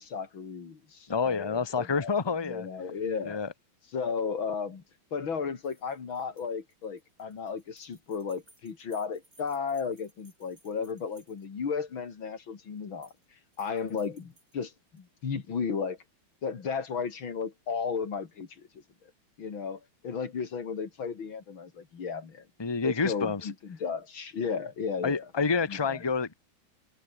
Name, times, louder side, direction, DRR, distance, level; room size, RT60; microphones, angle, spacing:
voice 1, 0.0-3.4 3.9-4.8 5.1-13.1 13.6-16.0 16.4-18.8 19.4-22.5 22.8-25.3 25.7-26.0, left 6 dB, 90° left, 3.4 m, -34 dB
voice 2, 1.1-2.7 3.2-3.5 22.6-23.4 25.0-26.3, left 5 dB, 15° left, 1.2 m, -28 dB
sound 1, 5.6-11.7 12.8-13.3 13.5-15.1, right 2 dB, 45° right, 7.8 m, -63 dB
omnidirectional pair, 2.1 m